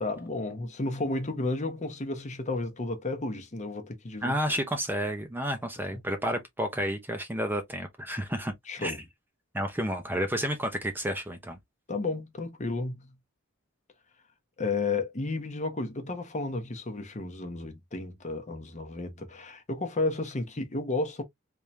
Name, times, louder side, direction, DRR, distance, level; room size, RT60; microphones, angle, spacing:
voice 1, 0.0-4.4 8.7-9.0 11.9-13.1 14.6-21.2, left 2 dB, 35° left, 0.9 m, -32 dB
voice 2, 4.2-8.5 8.8-9.0 9.5-11.6, equal, 10° right, 0.7 m, -31 dB
3.6 x 2.8 x 3.1 m
head